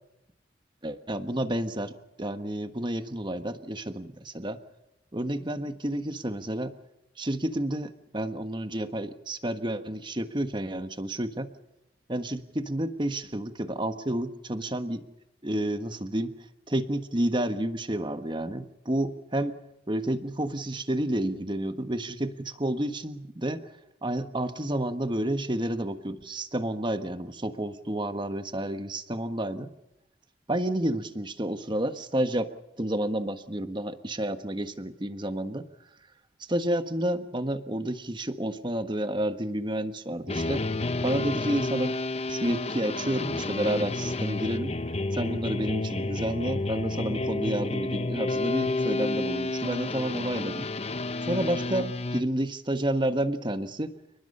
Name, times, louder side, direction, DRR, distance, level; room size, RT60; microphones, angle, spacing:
voice 1, 0.8-4.6 5.1-6.7 7.2-11.5 12.1-15.0 15.4-16.3 16.7-19.6 19.9-23.7 24.0-29.7 30.5-32.5 32.8-35.6 36.5-40.6 41.0-41.9 42.3-44.7 45.1-50.7 51.3-53.9, right 1 dB, 25° right, 9 dB, 1.4 m, -30 dB
sound 1, 40.3-52.2, left 2 dB, 35° left, 0.9 m, -30 dB
30.0 x 20.0 x 5.5 m, 0.88 s
head